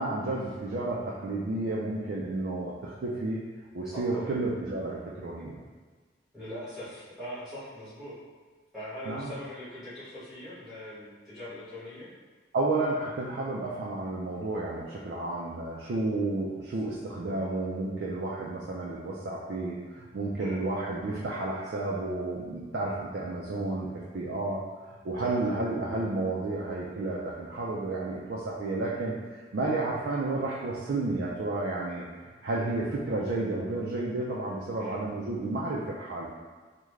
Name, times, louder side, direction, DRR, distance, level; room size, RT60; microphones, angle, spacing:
voice 1, 0.0-3.4 3.7-5.6 9.1-9.3 12.5-24.6 24.9-32.0 32.4-36.3, right 2 dB, 75° right, -5 dB, 0.4 m, -31 dB
voice 2, 3.9-4.3 6.3-8.1 8.7-12.1 20.4-20.6 25.2-25.5 34.8-35.0, equal, ahead, -14 dB, 1.2 m, -41 dB
3.6 x 2.1 x 3.1 m, 1.4 s
head